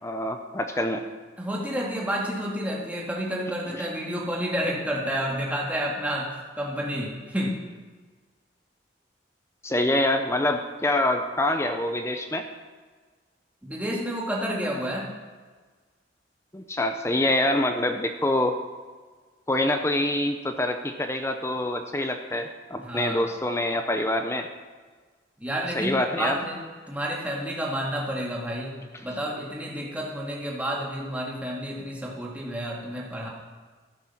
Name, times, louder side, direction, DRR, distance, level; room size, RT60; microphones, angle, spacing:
voice 1, 0.0-1.0 9.6-12.5 16.5-18.6 19.5-24.5 25.7-26.4, left 1 dB, 15° left, 7 dB, 0.6 m, -25 dB
voice 2, 1.4-7.6 13.6-15.1 22.8-23.2 25.4-28.8 29.0-33.3, equal, 10° right, -3 dB, 1.9 m, -30 dB
13.5 x 8.6 x 5.9 m, 1.4 s
head